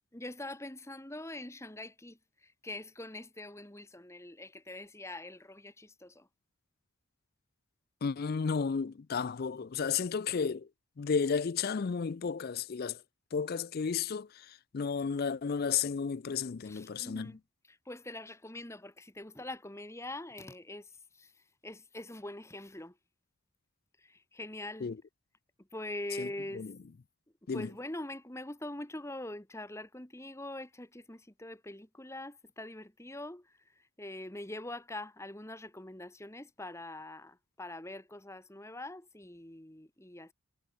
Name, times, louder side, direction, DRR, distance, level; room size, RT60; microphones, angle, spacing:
voice 1, 0.1-6.3 16.6-23.0 24.0-24.9 25.6-26.7 27.4-40.3, left 1 dB, 10° left, 1.4 m, -44 dB
voice 2, 8.0-10.7 11.0-13.0 13.3-17.3 24.8-25.0 26.2-26.3 26.5-26.7 27.5-27.7, left 6 dB, 45° left, 0.4 m, -33 dB
head